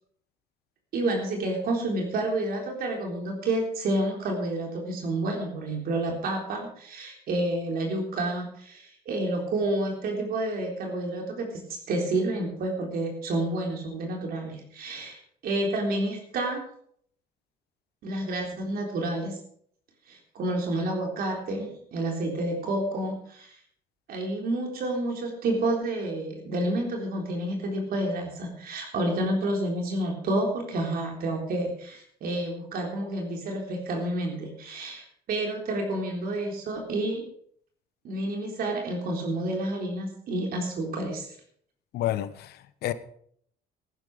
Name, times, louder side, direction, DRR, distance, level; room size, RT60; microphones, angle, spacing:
voice 1, 0.9-11.6 11.9-16.6 18.0-19.4 20.1-23.5 24.1-37.2 38.0-41.3, right 1 dB, 60° right, 3.9 m, -29 dB
voice 2, 41.9-42.9, left 13 dB, 70° left, 1.1 m, -30 dB
14.5 x 11.0 x 5.1 m
cardioid pair, 110°, 17 cm